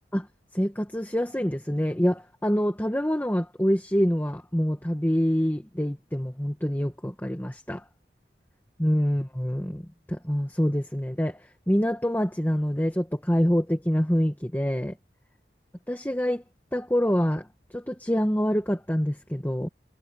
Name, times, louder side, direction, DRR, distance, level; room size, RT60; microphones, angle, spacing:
voice 1, 0.5-7.8 8.8-9.8 10.1-14.9 15.9-16.4 16.7-17.5 17.7-19.7, equal, 10° left, 1.7 m, -26 dB
head